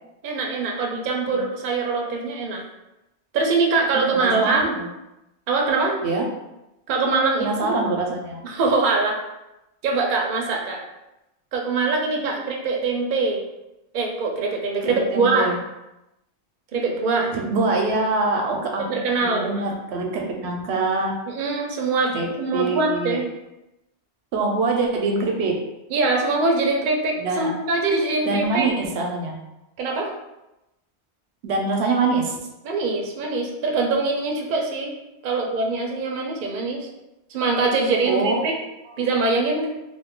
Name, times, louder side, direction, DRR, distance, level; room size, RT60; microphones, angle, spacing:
voice 1, 0.2-2.6 3.3-4.8 5.5-6.0 6.9-7.8 8.4-9.2 9.8-10.8 11.5-13.4 13.9-15.5 16.7-17.3 18.8-19.8 21.3-22.1 22.4-23.3 25.9-28.6 29.8-30.1 32.6-34.9 35.2-36.9 37.3-38.6 39.0-39.7, right 3 dB, 55° right, 0 dB, 0.6 m, -23 dB
voice 2, 3.9-4.9 6.0-6.2 7.4-8.4 14.8-15.6 17.3-21.1 22.1-23.2 24.3-25.5 27.2-27.5 28.3-29.3 31.4-32.4 35.3-35.4 38.1-38.4 38.9-39.0, right 3 dB, 80° right, 1 dB, 0.9 m, -24 dB
2.5 x 2.4 x 3.6 m, 0.94 s
omnidirectional pair, 1.1 m